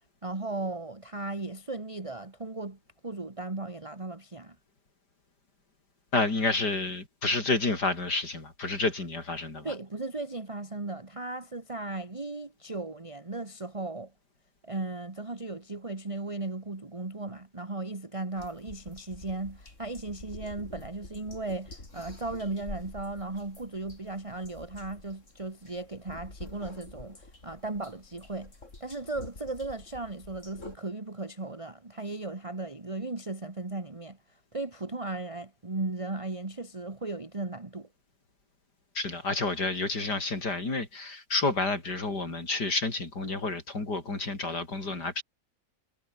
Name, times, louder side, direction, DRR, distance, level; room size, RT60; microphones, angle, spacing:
voice 1, 0.2-2.8 3.0-4.6 9.6-14.1 14.6-28.5 28.8-34.2 34.5-37.9, right 2 dB, 20° right, 1.9 m, -36 dB
voice 2, 6.1-9.7 39.0-45.2, left 3 dB, 75° left, 5.6 m, -30 dB
sound 1, 18.4-30.8, left 2 dB, 45° left, 5.0 m, -48 dB
omnidirectional pair, 1.8 m